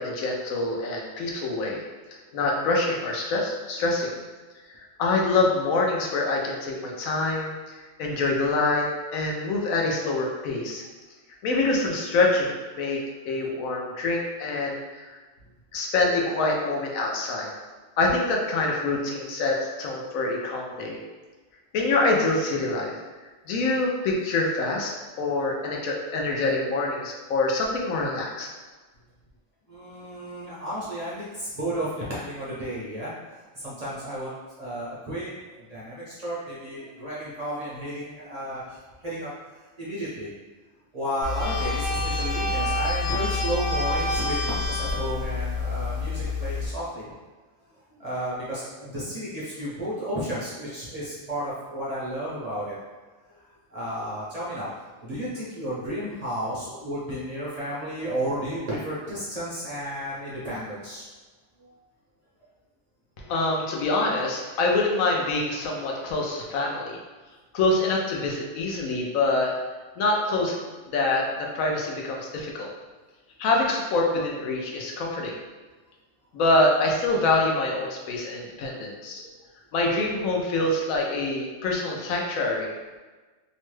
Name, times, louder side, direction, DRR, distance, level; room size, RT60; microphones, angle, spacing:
voice 1, 0.0-1.8 2.3-4.1 5.0-8.9 9.1-10.8 11.4-15.1 15.7-17.5 18.0-21.0 21.7-23.0 23.5-28.5 63.2-67.0 67.5-69.5 70.0-70.6 70.9-72.7 73.4-75.3 76.3-79.2 79.7-82.7, left 2 dB, 85° left, -1 dB, 1.0 m, -25 dB
voice 2, 29.7-34.3 34.6-35.3 35.7-39.3 39.8-40.3 40.9-47.1 47.9-52.8 53.3-53.4 53.7-61.0 61.6-61.7 79.2-79.3, equal, 45° right, -8 dB, 0.5 m, -33 dB
sound 1, 41.2-46.7, left 3 dB, 65° left, 0.9 m, -27 dB
3.0 x 2.2 x 3.0 m, 1.3 s
omnidirectional pair, 1.4 m